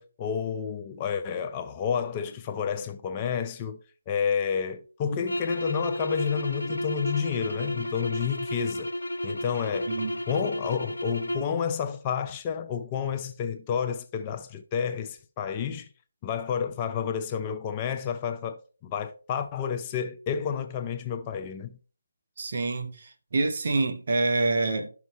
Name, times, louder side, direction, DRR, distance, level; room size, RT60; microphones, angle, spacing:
voice 1, 0.0-3.8 4.1-8.9 9.2-9.9 10.3-15.9 16.2-21.7, left 7 dB, 20° left, 0.5 m, -30 dB
sound 1, 5.2-11.6, left 1 dB, 70° left, 0.7 m, -32 dB
voice 2, 22.4-24.9, right 3 dB, 45° right, 1.1 m, -26 dB
12.0 x 5.9 x 3.0 m
figure-of-eight pair, 150°, 0 cm